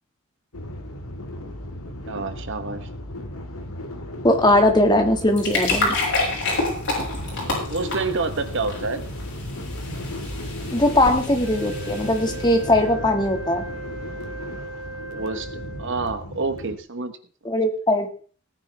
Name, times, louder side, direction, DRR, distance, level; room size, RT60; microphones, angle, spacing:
sound 1, 0.5-16.8, left 1 dB, 85° left, 1.9 m, -35 dB
voice 1, 2.1-2.9 7.4-9.0 15.1-15.5 15.8-17.1, right 3 dB, 60° right, 10 dB, 1.1 m, -28 dB
voice 2, 4.2-6.0 10.7-13.6 17.4-18.1, left 1 dB, 20° left, 5 dB, 1.8 m, -19 dB
sound 2, 5.1-12.6, left 2 dB, 55° left, 6.4 m, -29 dB
Wind instrument woodwind instrument, 11.4-16.1, right 3 dB, 85° right, 3.0 m, -37 dB
18.0 x 9.9 x 3.4 m, 0.43 s
head